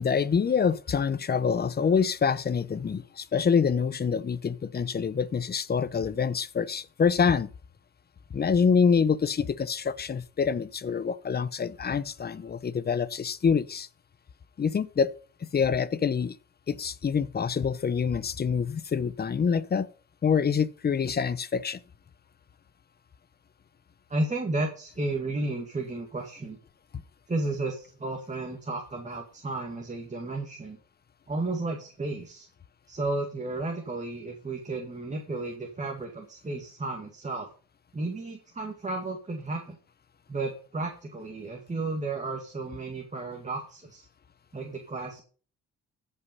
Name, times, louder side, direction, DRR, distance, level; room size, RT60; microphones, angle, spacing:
voice 1, 0.0-7.5 8.3-13.9 14.6-15.1 15.4-16.4 16.7-19.9 20.2-21.8, left 6 dB, 30° left, 0.8 m, -26 dB
voice 2, 24.1-26.6 27.3-30.8 31.3-32.5 32.9-37.5 37.9-39.8 40.3-44.1 44.5-45.2, right 2 dB, 25° right, 2.1 m, -33 dB
14.5 x 5.7 x 5.4 m
cardioid pair, 90°, 30 cm